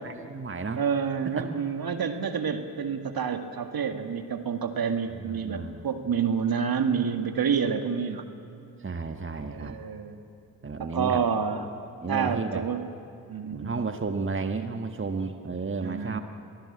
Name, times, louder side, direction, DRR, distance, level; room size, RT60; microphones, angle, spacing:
voice 1, 0.0-0.8 1.3-1.5 5.1-5.9 8.8-9.8 10.6-11.2 12.0-12.6 13.5-16.2, right 4 dB, 30° right, 7 dB, 1.5 m, -32 dB
voice 2, 0.8-8.3 9.5-10.2 10.8-11.7 12.1-12.8 13.3-13.7 15.8-16.2, right 6 dB, 55° right, 7 dB, 2.0 m, -28 dB
23.5 x 18.0 x 8.7 m, 2.4 s
hypercardioid pair, 40°, 42 cm